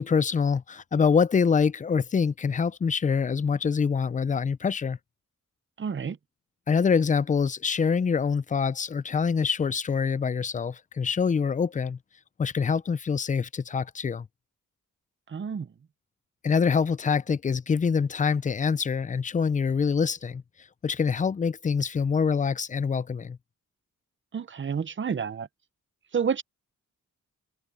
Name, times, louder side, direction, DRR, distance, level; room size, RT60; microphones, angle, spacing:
voice 1, 0.0-5.0 6.7-12.0 12.4-14.3 16.4-20.4 20.8-23.4, left 6 dB, 25° left, 0.4 m, -25 dB
voice 2, 5.8-6.2 15.3-15.7 24.3-25.5 26.1-26.4, right 6 dB, 40° right, 0.8 m, -29 dB
open air
wide cardioid pair, 120°, 32 cm